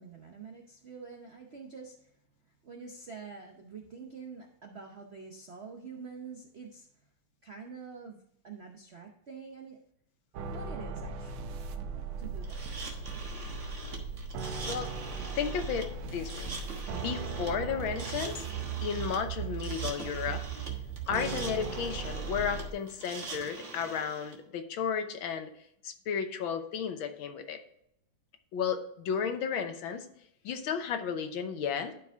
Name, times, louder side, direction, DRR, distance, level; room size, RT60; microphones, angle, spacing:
voice 1, 0.0-2.1 2.6-6.9 7.4-9.8 10.5-11.5 12.2-12.6, right 5 dB, 60° right, 2 dB, 0.7 m, -46 dB
sound 1, 10.3-22.7, right 6 dB, 85° right, 1.7 m, -38 dB
sound 2, 12.4-24.3, right 2 dB, 40° right, 1.5 m, -43 dB
voice 2, 15.3-16.6 16.9-18.4 18.8-20.4 21.1-25.5 25.8-27.6 28.5-30.1 30.4-31.9, left 7 dB, 75° left, 7 dB, 1.7 m, -33 dB
11.5 x 4.7 x 3.5 m, 0.71 s
omnidirectional pair, 2.3 m